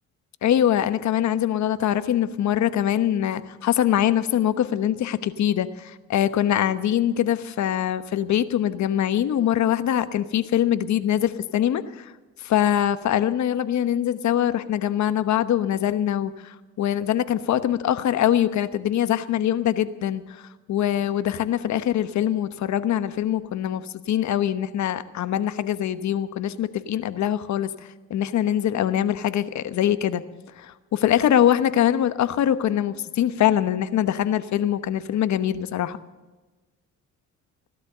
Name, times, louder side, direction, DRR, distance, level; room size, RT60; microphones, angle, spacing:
voice 1, 0.4-12.1 12.4-30.2 30.6-36.0, left 11 dB, 70° left, 12 dB, 1.1 m, -23 dB
17.0 x 12.5 x 6.8 m, 1.2 s
cardioid pair, 90°, 30 cm